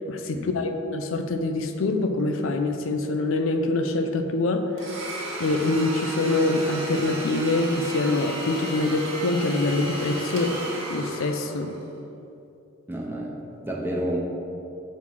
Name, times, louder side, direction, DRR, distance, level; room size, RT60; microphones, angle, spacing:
voice 1, 0.1-4.6 5.4-10.5 10.9-11.7, left 2 dB, 70° left, 5 dB, 0.5 m, -25 dB
Domestic sounds home sounds, 4.8-11.8, right 1 dB, 65° right, 1.2 m, -34 dB
voice 2, 12.9-14.2, right 1 dB, 10° right, -3 dB, 0.7 m, -30 dB
5.9 x 3.1 x 5.5 m, 2.8 s
head